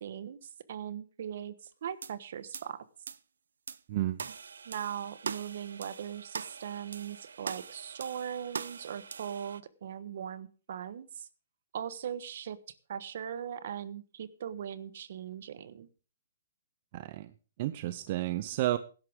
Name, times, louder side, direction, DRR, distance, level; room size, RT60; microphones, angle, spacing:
voice 1, 0.0-2.9 4.6-11.3 11.7-12.6 12.9-15.9, right 9 dB, 60° right, 15 dB, 1.2 m, -40 dB
sound 1, 2.0-2.1 2.5-2.7 3.1-3.2 3.7-3.8 4.2-9.6, right 6 dB, 85° right, 0.6 m, -42 dB
voice 2, 3.9-4.2 16.9-17.3 17.6-18.8, right 15 dB, 45° right, 13 dB, 0.7 m, -31 dB
16.5 x 11.0 x 3.6 m, 0.35 s
hypercardioid pair, 145°, 0 cm